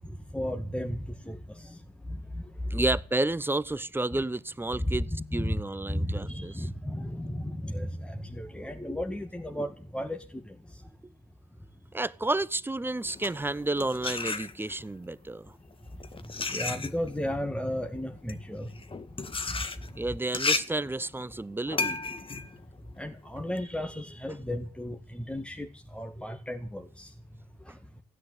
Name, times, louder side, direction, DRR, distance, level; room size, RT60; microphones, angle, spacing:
voice 1, 0.3-1.8 2.1-2.4 2.7-2.8 4.8-5.6 5.9-10.6 16.5-18.7 23.0-27.1, left 1 dB, 5° left, 2.0 m, -34 dB
voice 2, 2.7-6.7 11.9-15.5 20.0-22.0, right 2 dB, 10° right, 0.9 m, -31 dB
sound 1, 13.0-14.9 15.7-23.6, left 4 dB, 25° left, 1.8 m, -34 dB
16.5 x 10.0 x 8.0 m
hypercardioid pair, 50°, 20 cm